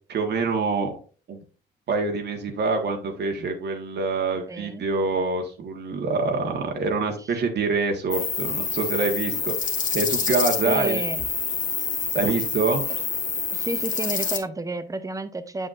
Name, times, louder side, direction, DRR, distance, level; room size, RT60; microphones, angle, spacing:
voice 1, 0.1-1.0 1.3-1.4 1.9-11.0 12.1-12.9, right 4 dB, 60° right, 4 dB, 1.2 m, -26 dB
voice 2, 4.5-4.8 10.6-11.3 13.5-15.7, right 3 dB, 15° right, 12 dB, 0.6 m, -31 dB
sound 1, 8.1-14.4, left 5 dB, 40° left, 1.2 m, -27 dB
7.6 x 6.5 x 2.4 m, 0.37 s
cardioid pair, 90°, 20 cm